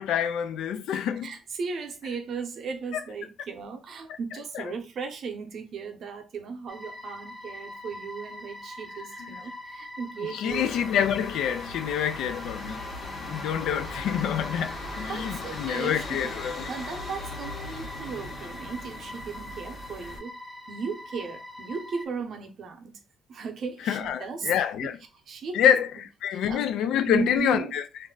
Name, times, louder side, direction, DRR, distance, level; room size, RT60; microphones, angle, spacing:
voice 1, 0.0-1.3 4.5-4.6 9.2-9.4 10.3-12.8 13.2-16.7 23.9-25.0 25.5-25.9 26.2-27.8, left 9 dB, 85° left, 0.3 m, -27 dB
voice 2, 1.2-10.7 15.1-16.3 16.7-20.3 20.7-23.0 23.3-25.0 25.3-25.7 26.3-26.6 27.1-27.8, right 5 dB, 65° right, 0.7 m, -36 dB
sound 1, 6.7-22.0, left 1 dB, 5° right, 0.6 m, -43 dB
sound 2, 10.5-20.2, left 2 dB, 55° left, 1.0 m, -39 dB
2.5 x 2.1 x 3.7 m
cardioid pair, 90°, 0 cm